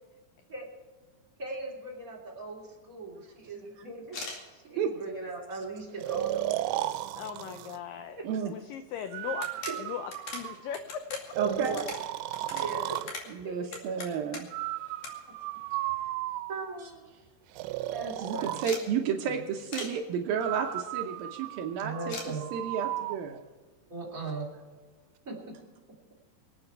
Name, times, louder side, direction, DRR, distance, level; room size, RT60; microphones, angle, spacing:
voice 1, 1.4-4.2 4.5-7.0 7.5-7.6 8.1-8.3 9.7-9.8 11.4-11.8 12.5-13.9 15.3-15.4 16.0-16.1 16.5-17.1 17.9-19.3 21.8-22.5 23.9-24.5 25.2-25.6 25.9-26.0, right 3 dB, 20° right, -2 dB, 3.0 m, -39 dB
sound 1, 4.0-4.4 5.1-5.2 5.7-6.4 6.7-6.8 7.1-7.2 8.5-8.6 8.9-9.0 9.3-14.6 15.0-15.1 15.4-16.2 16.5-16.6 16.9-17.0 17.2-17.6 18.6-18.9 19.7-20.0 22.1-22.3, left 3 dB, 50° left, 3.3 m, -41 dB
Breathing, 6.0-7.8 9.1-10.8 11.3-13.1 14.5-16.8 17.6-18.7 20.3-23.2, right 15 dB, 85° right, 2.8 m, -35 dB
voice 2, 7.2-8.2 8.4-11.0, left 9 dB, 85° left, 9 dB, 1.9 m, -39 dB
voice 3, 11.4-11.8 13.4-14.5 18.2-22.2 22.5-23.4, right 7 dB, 70° right, 4 dB, 2.4 m, -31 dB
24.5 x 8.9 x 4.6 m, 1.4 s
omnidirectional pair, 4.8 m